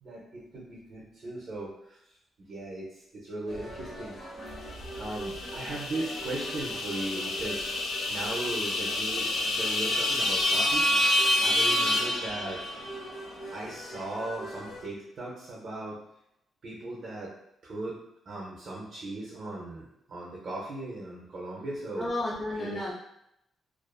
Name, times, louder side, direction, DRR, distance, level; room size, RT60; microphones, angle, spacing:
voice 1, 0.0-2.0 2.4-4.2 5.0-7.6 8.1-10.9 11.4-12.6 13.5-16.0 16.6-17.3 17.6-18.0 18.3-22.1 22.5-22.8, right 2 dB, 50° right, -3 dB, 0.5 m, -37 dB
sound 1, 3.5-14.8, equal, 55° left, 1.1 m, -43 dB
sound 2, 4.9-13.0, left 1 dB, 80° left, 0.4 m, -28 dB
voice 2, 21.9-22.9, left 1 dB, 15° left, -6 dB, 0.4 m, -32 dB
2.4 x 2.4 x 2.2 m, 0.79 s
cardioid pair, 135°, 0 cm